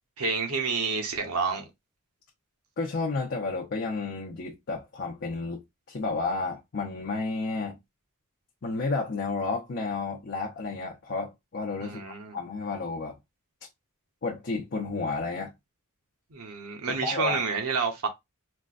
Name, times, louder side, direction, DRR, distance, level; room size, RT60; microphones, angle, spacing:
voice 1, 0.2-1.6 11.8-12.3 16.3-18.1, right 4 dB, 80° right, 0.9 m, -29 dB
voice 2, 2.8-5.6 5.9-7.8 8.6-12.0 12.3-13.1 14.2-15.5 16.9-17.4, left 3 dB, 50° left, 0.7 m, -31 dB
4.3 x 2.2 x 2.4 m
head